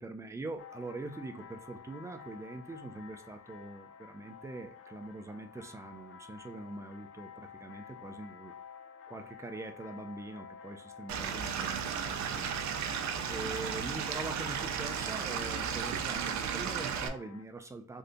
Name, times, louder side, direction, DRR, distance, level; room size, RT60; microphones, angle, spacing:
voice 1, 0.0-8.6 9.1-12.5 13.3-18.0, right 2 dB, 10° right, 0.4 m, -43 dB
sound 1, 0.6-17.4, left 7 dB, 45° left, 0.6 m, -51 dB
Stream / Liquid, 11.1-17.1, right 7 dB, 65° right, 0.5 m, -34 dB
3.3 x 2.7 x 2.6 m
cardioid pair, 90°, 30 cm